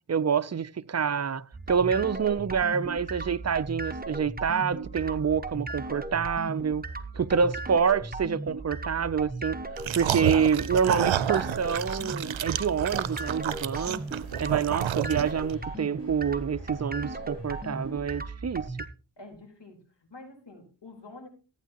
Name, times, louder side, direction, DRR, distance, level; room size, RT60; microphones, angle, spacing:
voice 1, 0.0-6.8 7.1-9.6 9.9-14.0 14.4-18.7, right 6 dB, 35° right, 0.6 m, -27 dB
sound 1, 1.5-18.9, right 2 dB, 20° right, 1.1 m, -37 dB
sound 2, 9.8-15.5, right 10 dB, 85° right, 0.6 m, -30 dB
sound 3, 11.2-17.9, left 1 dB, 30° left, 5.6 m, -53 dB
voice 2, 19.2-21.3, left 2 dB, 65° left, 4.2 m, -47 dB
14.5 x 9.1 x 2.9 m
cardioid pair, 50°, 45 cm